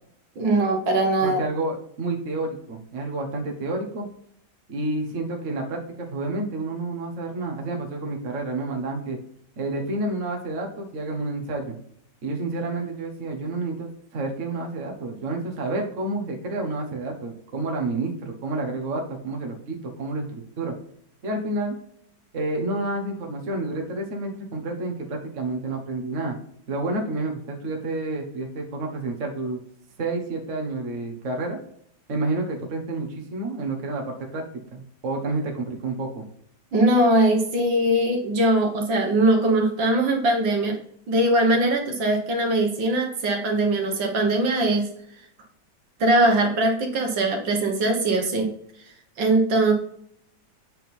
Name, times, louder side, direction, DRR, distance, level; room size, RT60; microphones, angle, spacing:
voice 1, 0.4-1.4 36.7-40.8 41.1-44.9 46.0-48.5 49.2-49.7, right 1 dB, 70° right, 2 dB, 2.0 m, -21 dB
voice 2, 1.2-4.1 4.7-9.2 9.6-11.8 12.2-20.8 21.2-21.8 22.3-26.4 26.7-29.6 30.0-31.6 32.1-34.4 34.7-36.2, right 2 dB, 45° right, 1 dB, 1.5 m, -29 dB
8.1 x 3.8 x 4.4 m, 0.66 s
omnidirectional pair, 2.1 m